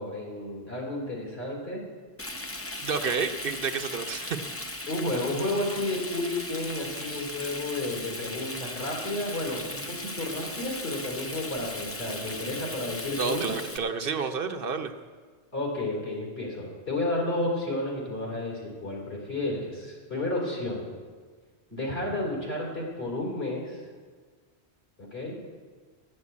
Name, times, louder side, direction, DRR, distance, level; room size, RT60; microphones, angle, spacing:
voice 1, 0.0-1.8 4.9-13.5 15.5-20.9 21.7-23.8 25.0-25.4, left 2 dB, 65° left, -3 dB, 3.8 m, -32 dB
Frying (food), 2.2-13.8, left 2 dB, 20° left, 0.5 m, -37 dB
voice 2, 2.8-4.4 13.1-14.9, right 5 dB, 60° right, 6 dB, 0.8 m, -30 dB
9.6 x 9.1 x 8.4 m, 1.5 s
omnidirectional pair, 1.1 m